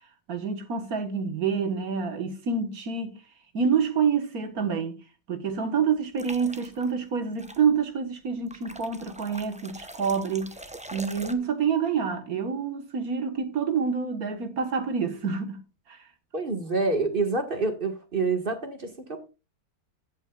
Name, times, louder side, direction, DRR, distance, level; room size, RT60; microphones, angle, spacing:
voice 1, 0.3-3.2 3.5-5.0 5.3-10.6 10.9-16.1, right 6 dB, 70° right, 1.9 m, -27 dB
sound 1, 6.2-6.9 7.4-7.6 8.5-11.3, right 1 dB, 5° right, 0.6 m, -43 dB
voice 2, 16.3-19.3, right 3 dB, 35° right, 1.9 m, -27 dB
15.5 x 8.4 x 2.4 m
omnidirectional pair, 1.6 m